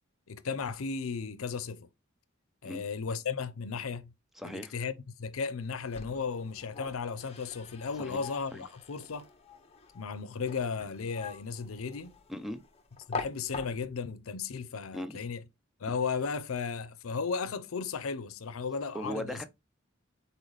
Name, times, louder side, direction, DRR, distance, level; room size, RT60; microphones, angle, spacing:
voice 1, 0.3-1.9 2.6-4.1 4.4-4.9 5.2-9.3 9.9-12.1 13.1-15.4 15.8-19.4, left 5 dB, 80° left, 0.5 m, -35 dB
voice 2, 4.4-4.7 8.0-8.2 8.5-8.6 12.3-12.6 14.9-15.2 18.9-19.4, equal, ahead, 0.4 m, -38 dB
sound 1, 5.6-14.1, left 4 dB, 30° left, 0.7 m, -45 dB
4.1 x 4.0 x 3.2 m
head